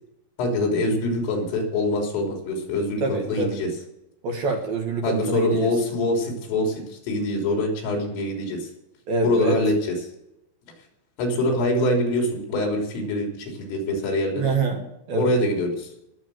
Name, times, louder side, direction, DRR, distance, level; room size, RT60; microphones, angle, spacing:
voice 1, 0.4-3.7 5.0-8.7 9.2-10.0 11.2-14.5 15.2-15.9, left 1 dB, 80° left, 1 dB, 6.0 m, -24 dB
voice 2, 3.0-3.6 4.2-5.7 9.1-9.6 14.4-14.8 15.1-15.3, right 3 dB, 60° right, 2 dB, 2.9 m, -25 dB
19.5 x 7.4 x 6.4 m, 0.86 s
omnidirectional pair, 5.8 m